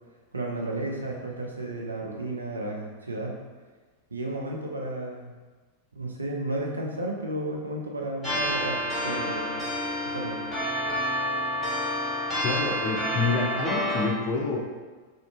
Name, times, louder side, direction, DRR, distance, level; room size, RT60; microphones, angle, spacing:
voice 1, 0.3-3.4 4.1-5.3 5.9-9.5 10.0-10.4, right 1 dB, 80° right, 0 dB, 0.4 m, -33 dB
sound 1, 8.2-14.1, equal, ahead, 1.1 m, -29 dB
voice 2, 12.4-14.6, left 4 dB, 40° left, -1 dB, 0.5 m, -27 dB
2.6 x 2.5 x 2.3 m, 1.3 s
figure-of-eight pair, 90°, 0 cm